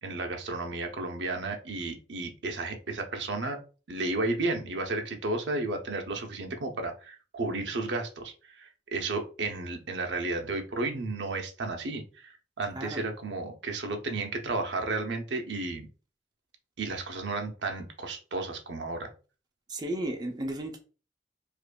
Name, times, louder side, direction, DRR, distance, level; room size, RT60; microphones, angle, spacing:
voice 1, 0.0-3.6 3.9-12.3 12.6-15.9 16.8-19.1, right 2 dB, 70° right, 0.7 m, -33 dB
voice 2, 12.7-13.0 19.7-20.8, right 1 dB, 25° right, 0.5 m, -34 dB
4.9 x 2.5 x 2.2 m
head